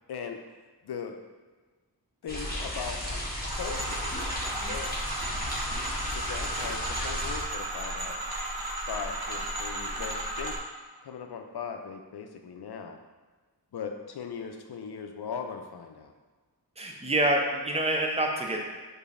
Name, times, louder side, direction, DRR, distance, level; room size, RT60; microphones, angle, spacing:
voice 1, 0.1-0.4 0.8-1.2 2.2-4.2 4.6-5.0 6.1-8.2 8.9-10.6 11.0-13.0 13.7-16.1, left 6 dB, 65° left, 5 dB, 0.5 m, -39 dB
sound 1, 2.3-7.4, left 1 dB, 20° left, 1.0 m, -34 dB
sound 2, 3.5-10.6, right 1 dB, 60° right, 0.8 m, -34 dB
voice 2, 16.8-18.6, right 1 dB, 15° right, 1 dB, 0.5 m, -27 dB
4.9 x 2.7 x 2.5 m, 1.4 s
wide cardioid pair, 50°, 41 cm